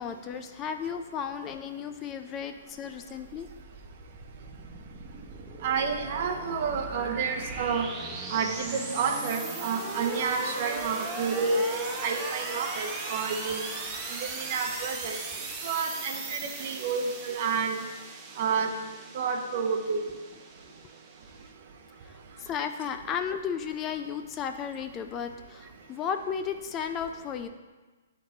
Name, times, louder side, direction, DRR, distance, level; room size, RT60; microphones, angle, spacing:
voice 1, 0.0-3.5 22.0-27.5, left 7 dB, 25° left, 7 dB, 0.3 m, -34 dB
sound 1, 2.7-21.4, right 3 dB, 20° right, 0.8 m, -38 dB
voice 2, 5.6-7.9 8.3-13.6 14.5-15.1 15.6-17.8 18.4-18.7 19.1-20.1, right 5 dB, 50° right, 3 dB, 0.9 m, -29 dB
9.2 x 3.6 x 3.8 m, 1.3 s
hypercardioid pair, 140°, 0 cm